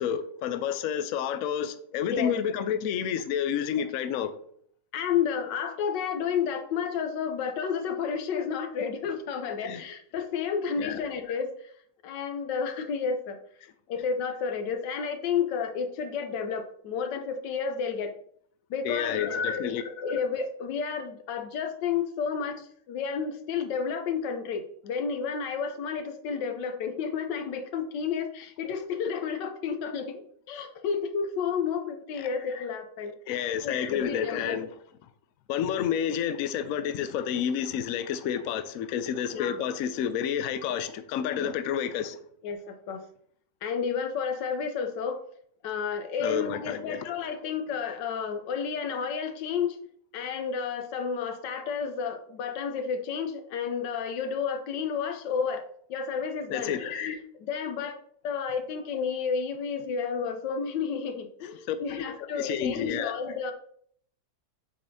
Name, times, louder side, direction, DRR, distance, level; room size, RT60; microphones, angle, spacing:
voice 1, 0.0-4.4 9.6-9.8 10.8-11.0 18.8-19.8 28.6-28.8 32.2-32.3 33.3-34.7 35.5-42.2 46.2-47.0 56.5-56.8 61.7-61.8 62.2-63.1, left 9 dB, 70° left, 0.8 m, -30 dB
voice 2, 4.9-11.7 12.0-13.4 13.9-18.1 18.7-33.1 33.6-34.6 39.3-39.6 41.4-41.5 42.4-43.0 43.6-45.2 45.6-49.8 50.1-58.0 58.2-63.5, left 6 dB, 85° left, 1.4 m, -31 dB
8.0 x 5.0 x 2.7 m
omnidirectional pair, 1.9 m